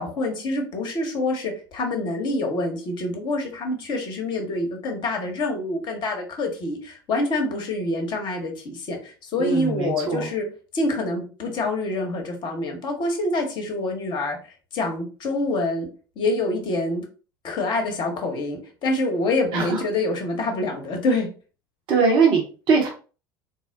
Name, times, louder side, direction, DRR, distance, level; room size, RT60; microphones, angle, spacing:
voice 1, 0.0-10.5 10.7-14.4 14.7-15.9 16.2-17.0 17.4-21.3, left 2 dB, 40° left, 3 dB, 0.9 m, -26 dB
voice 2, 9.4-10.3 19.5-19.8 21.9-22.9, right 5 dB, 45° right, 1 dB, 0.9 m, -21 dB
3.9 x 2.1 x 2.6 m, 0.36 s
figure-of-eight pair, 70°, 12 cm